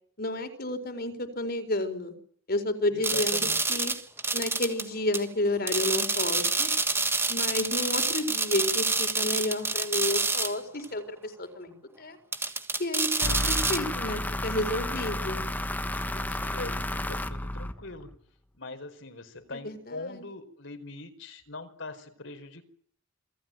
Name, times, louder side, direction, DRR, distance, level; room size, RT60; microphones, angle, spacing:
voice 1, 0.2-2.1 2.5-3.9 4.3-6.7 7.3-12.2 12.8-15.5 19.5-20.2, left 1 dB, 50° left, 7 dB, 4.5 m, -31 dB
voice 2, 2.9-3.6 16.0-18.1 18.5-22.6, left 2 dB, 65° left, 8 dB, 4.7 m, -42 dB
sound 1, 3.0-4.9 5.1-5.2 5.7-10.6 10.8-10.9 12.3-13.8, right 3 dB, 10° right, 1.6 m, -27 dB
sound 2, 13.2-18.2, left 1 dB, 10° left, 1.1 m, -32 dB
28.0 x 19.0 x 9.2 m, 0.63 s
head